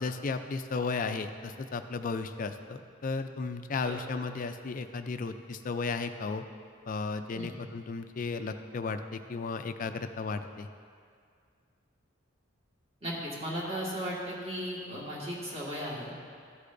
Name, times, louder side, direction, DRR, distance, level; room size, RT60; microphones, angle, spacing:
voice 1, 0.0-6.4 6.9-10.7, left 4 dB, 40° left, 8 dB, 0.4 m, -34 dB
voice 2, 13.0-16.1, equal, 30° right, -5 dB, 1.8 m, -36 dB
13.5 x 6.5 x 2.6 m, 2.1 s
head